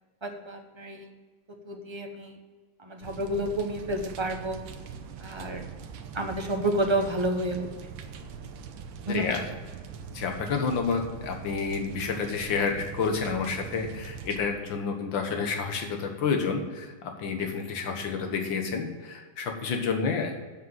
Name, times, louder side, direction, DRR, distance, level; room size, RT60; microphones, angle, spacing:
voice 1, 0.2-1.1 1.5-2.4 2.8-4.6 5.2-5.6 6.1-7.9 9.1-9.3, right 1 dB, 25° right, 2 dB, 0.6 m, -30 dB
sound 1, 3.0-14.4, right 6 dB, 80° right, 1.6 m, -42 dB
voice 2, 9.1-9.4 10.1-20.4, left 5 dB, 70° left, 4 dB, 2.1 m, -29 dB
7.9 x 6.7 x 7.5 m, 1.4 s
omnidirectional pair, 2.2 m